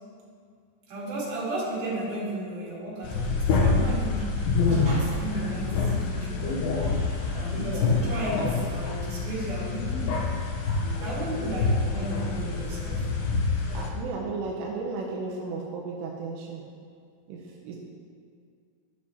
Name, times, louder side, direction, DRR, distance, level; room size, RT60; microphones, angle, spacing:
voice 1, 0.9-6.6 7.5-10.1 11.0-13.1, right 2 dB, 65° right, -7 dB, 3.9 m, -34 dB
sound 1, 3.0-13.9, left 3 dB, 75° left, 2.8 m, -26 dB
sound 2, 4.3-5.4 5.9-8.8, right 1 dB, 30° right, 2.3 m, -44 dB
voice 2, 8.2-8.5 13.7-16.6 17.3-17.8, right 4 dB, 90° right, -1 dB, 2.8 m, -34 dB
13.0 x 6.5 x 2.9 m, 2.2 s
omnidirectional pair, 4.8 m